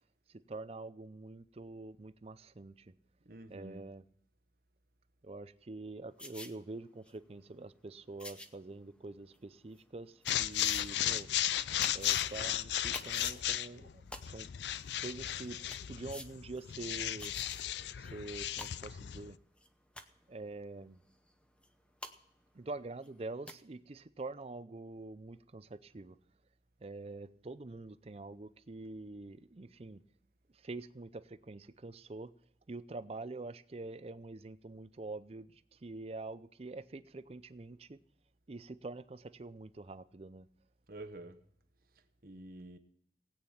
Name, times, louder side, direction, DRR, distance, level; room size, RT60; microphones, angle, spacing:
voice 1, 0.3-2.9 3.5-4.0 5.2-11.3 11.9-14.5 15.0-15.6 15.9-17.3 18.0-19.4 20.3-21.0 22.5-26.2 26.8-30.0 30.5-32.3 32.7-38.0 38.5-40.5, right 2 dB, 35° right, 0.5 m, -46 dB
voice 2, 3.2-3.8 40.9-41.4 42.2-42.8, right 2 dB, 55° right, 1.1 m, -48 dB
sound 1, 6.2-6.5 7.1-7.2 8.2-8.5 9.3-9.4 10.3-10.8 11.2-11.3 11.8-12.3 12.9-13.4 14.1-14.2 14.9-15.0 15.3-15.4 15.7-15.8 16.1-16.3 16.6-16.7 17.2-17.6 18.0-18.1 18.4-18.7 19.6-19.7 20.0-20.2 21.6-21.7 22.0-22.1 23.0-23.1 23.5-23.6, left 1 dB, 5° left, 0.8 m, -45 dB
sound 2, 10.3-19.3, left 12 dB, 75° left, 0.4 m, -35 dB
17.5 x 8.9 x 5.7 m
head